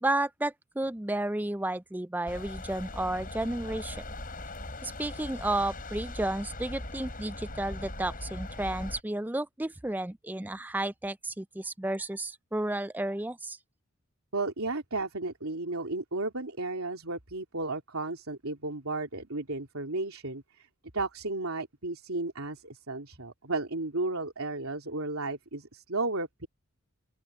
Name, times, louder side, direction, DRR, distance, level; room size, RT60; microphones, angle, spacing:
voice 1, 0.0-4.0 4.8-13.6, right 1 dB, 10° right, 0.4 m, -32 dB
sound 1, 2.3-9.0, left 2 dB, 40° left, 7.8 m, -40 dB
voice 2, 14.3-20.7 20.9-26.5, right 2 dB, 80° right, 3.1 m, -34 dB
open air
head